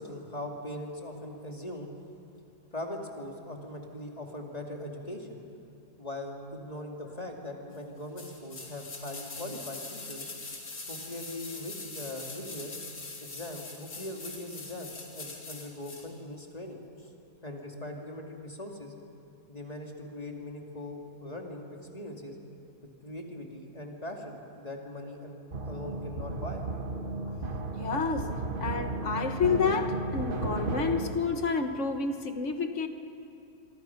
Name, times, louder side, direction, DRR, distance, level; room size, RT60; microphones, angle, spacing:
voice 1, 0.0-1.9 2.7-5.4 6.0-10.3 10.9-12.8 13.2-17.1 17.4-18.9 19.5-21.7 21.9-22.4 23.0-26.6, left 1 dB, 25° left, 2.5 m, -40 dB
sound 1, 8.2-16.1 16.4-16.5, left 3 dB, 80° left, 3.5 m, -43 dB
sound 2, 25.5-31.1, right 3 dB, 35° right, 1.3 m, -34 dB
voice 2, 27.8-32.9, left 5 dB, 50° left, 1.4 m, -29 dB
26.5 x 24.0 x 5.9 m
omnidirectional pair, 1.8 m